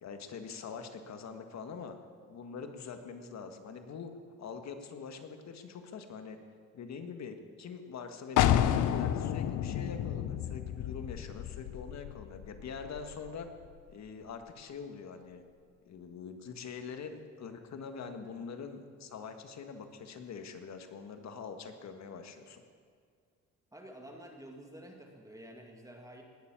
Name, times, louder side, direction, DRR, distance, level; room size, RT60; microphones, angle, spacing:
voice 1, 0.0-1.9 2.3-4.1 4.4-6.4 6.7-13.5 13.9-15.4 15.8-22.6, left 5 dB, 60° left, 6 dB, 1.7 m, -44 dB
sound 1, 8.4-13.9, left 11 dB, 90° left, 0.7 m, -31 dB
voice 2, 23.7-26.2, right 1 dB, 10° right, 1 dB, 2.3 m, -50 dB
19.5 x 7.1 x 8.9 m, 2.1 s
cardioid pair, 90°, 30 cm